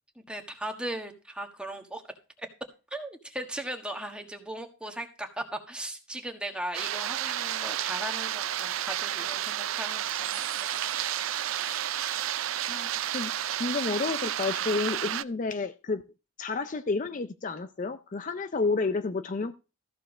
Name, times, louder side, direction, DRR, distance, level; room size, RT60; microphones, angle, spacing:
voice 1, 0.1-2.0 2.4-2.5 2.9-10.7, right 1 dB, 5° right, 1.4 m, -38 dB
sound 1, 6.7-15.2, right 11 dB, 85° right, 0.5 m, -31 dB
sound 2, 9.7-14.7, right 8 dB, 45° right, 0.8 m, -44 dB
voice 2, 12.7-16.0 16.4-19.5, left 3 dB, 40° left, 0.5 m, -30 dB
14.0 x 4.7 x 6.0 m
head